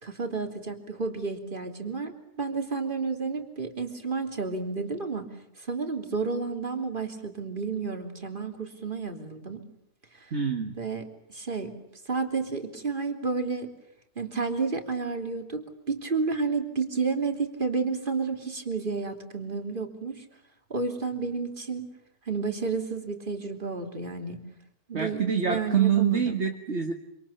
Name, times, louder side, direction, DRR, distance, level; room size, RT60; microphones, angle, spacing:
voice 1, 0.0-5.3 5.6-9.6 10.1-10.3 10.8-11.7 12.0-13.7 14.1-20.2 20.7-21.9 22.2-24.4 24.9-26.4, right 4 dB, 35° right, 5 dB, 3.3 m, -31 dB
voice 2, 10.3-10.8 24.9-26.9, right 8 dB, 50° right, 4 dB, 2.1 m, -25 dB
26.5 x 26.5 x 7.0 m, 0.80 s
omnidirectional pair, 1.5 m